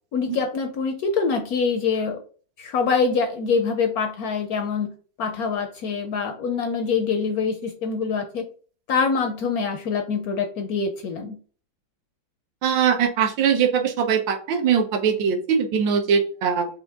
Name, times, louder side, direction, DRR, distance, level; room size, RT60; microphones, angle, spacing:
voice 1, 0.1-2.2 2.6-4.9 5.2-8.4 8.9-11.4, left 5 dB, 70° left, 5 dB, 0.9 m, -24 dB
voice 2, 12.6-16.7, right 7 dB, 70° right, 5 dB, 1.5 m, -21 dB
5.3 x 2.6 x 3.5 m, 0.41 s
omnidirectional pair, 2.1 m